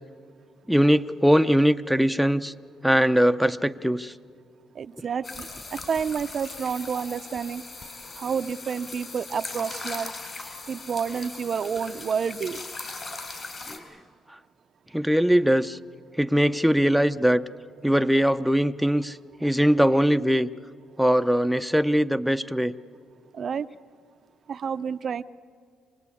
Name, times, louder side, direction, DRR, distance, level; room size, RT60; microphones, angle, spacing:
voice 1, 0.7-2.5 2.8-4.1 11.1-11.2 13.7-13.8 14.9-15.8 16.2-17.4 17.8-20.5 21.0-22.7, equal, ahead, 9 dB, 0.6 m, -21 dB
voice 2, 4.8-7.6 8.1-10.1 10.7-12.6 23.3-23.7 24.5-25.2, right 6 dB, 50° right, 13 dB, 0.5 m, -29 dB
sound 1, 5.2-13.8, left 3 dB, 35° left, 3.9 m, -39 dB
25.5 x 19.0 x 8.4 m, 2.2 s
cardioid pair, 90°, 0 cm